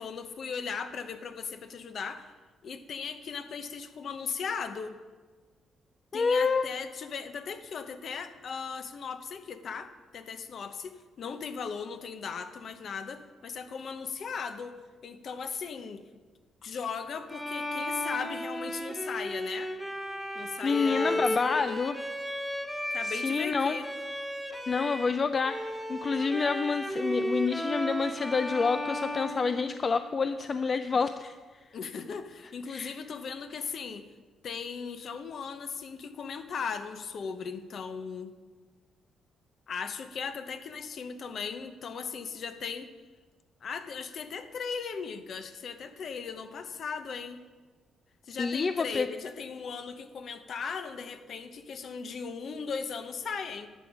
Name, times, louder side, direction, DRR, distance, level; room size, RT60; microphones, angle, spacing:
voice 1, 0.0-2.3 2.6-4.9 6.1-16.0 16.6-19.7 20.3-21.8 22.9-23.9 31.7-34.0 34.4-38.3 39.7-42.9 43.6-47.4 48.3-53.7, left 6 dB, 55° left, 9 dB, 0.9 m, -37 dB
voice 2, 6.1-6.7 20.6-22.0 23.0-23.8 24.7-31.6 32.7-32.9 48.4-49.1, left 5 dB, 40° left, 10 dB, 0.4 m, -28 dB
Bowed string instrument, 17.3-25.2 25.4-30.2, equal, 5° left, 1.0 m, -34 dB
11.0 x 7.2 x 6.2 m, 1.4 s
cardioid pair, 90°, 0 cm